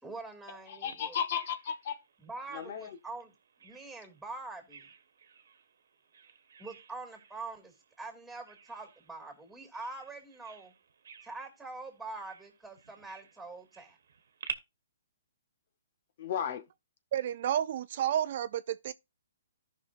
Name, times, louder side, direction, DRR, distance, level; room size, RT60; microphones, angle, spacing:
voice 1, 0.0-1.1 2.2-3.3 3.6-4.9 6.6-10.7 11.2-14.0, right 3 dB, 5° right, 2.5 m, -44 dB
voice 2, 0.7-2.0 2.5-3.0 16.2-16.6, left 8 dB, 50° left, 0.8 m, -34 dB
Bird vocalization bird call bird song, 0.9-14.5, right 6 dB, 70° right, 1.2 m, -51 dB
voice 3, 17.1-18.9, right 10 dB, 55° right, 0.4 m, -31 dB
15.0 x 5.6 x 2.5 m
hypercardioid pair, 140°, 0 cm